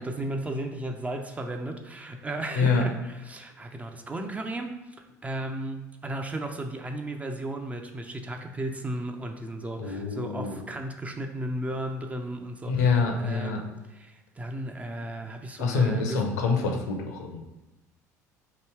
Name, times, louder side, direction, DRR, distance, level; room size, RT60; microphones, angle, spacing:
voice 1, 0.0-4.8 5.2-16.2, right 1 dB, 15° right, 4 dB, 0.4 m, -35 dB
voice 2, 9.8-10.6 12.7-13.6 15.6-17.4, left 4 dB, 70° left, 2 dB, 0.6 m, -26 dB
3.0 x 2.8 x 4.4 m, 1.0 s
figure-of-eight pair, 65°, 9 cm